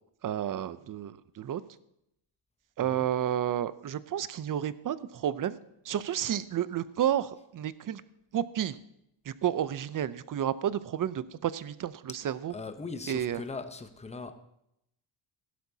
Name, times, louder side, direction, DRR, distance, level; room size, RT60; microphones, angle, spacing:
voice 1, 0.2-1.6 2.8-5.6 5.8-8.0 8.3-8.8 9.3-12.5 13.1-13.4, right 10 dB, 40° right, 15 dB, 0.6 m, -31 dB
voice 2, 12.5-14.3, left 4 dB, 15° left, 9 dB, 0.8 m, -40 dB
16.0 x 12.0 x 2.8 m, 0.79 s
cardioid pair, 110°, 50 cm